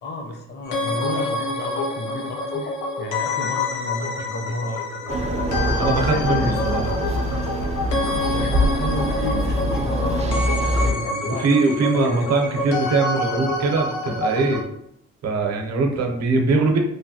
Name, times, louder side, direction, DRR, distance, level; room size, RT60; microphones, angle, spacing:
voice 1, 0.0-5.2 5.9-6.6 6.9-7.0 8.3-11.4 11.9-12.4, left 1 dB, 35° left, 2 dB, 0.6 m, -32 dB
sound 1, 0.6-14.6, left 2 dB, 80° left, 0.6 m, -27 dB
sound 2, 5.1-10.9, equal, 20° right, 0.3 m, -23 dB
voice 2, 5.8-6.8 11.4-14.6 15.2-16.8, right 3 dB, 55° right, 3 dB, 0.7 m, -21 dB
3.2 x 2.1 x 2.7 m, 0.74 s
cardioid pair, 90°, 30 cm